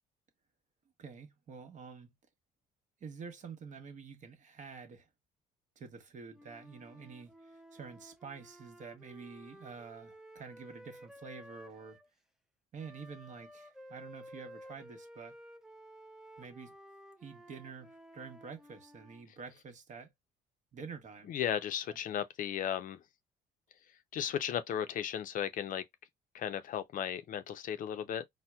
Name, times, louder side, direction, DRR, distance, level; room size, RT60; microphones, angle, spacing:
voice 1, 1.0-2.1 3.0-5.1 5.8-12.0 12.7-15.4 16.4-16.7 17.2-20.1 20.7-21.3 21.9-22.0, right 5 dB, 45° right, 0.9 m, -48 dB
Wind instrument woodwind instrument, 6.3-12.1 12.8-19.3, equal, 5° right, 0.4 m, -54 dB
voice 2, 21.3-23.0 24.1-25.8 26.3-28.3, left 9 dB, 55° left, 0.5 m, -35 dB
4.2 x 2.1 x 2.2 m
cardioid pair, 110°, 17 cm